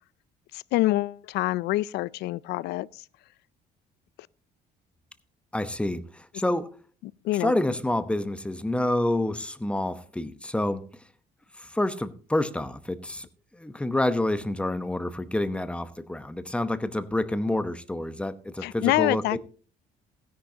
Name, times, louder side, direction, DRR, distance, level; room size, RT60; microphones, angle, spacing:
voice 1, 0.5-2.9 7.0-7.5 18.6-19.4, left 17 dB, 80° left, 0.4 m, -26 dB
voice 2, 5.5-6.7 7.4-10.8 11.6-13.3 13.5-19.4, left 1 dB, 5° left, 0.9 m, -28 dB
15.5 x 10.5 x 2.8 m
cardioid pair, 110°, 17 cm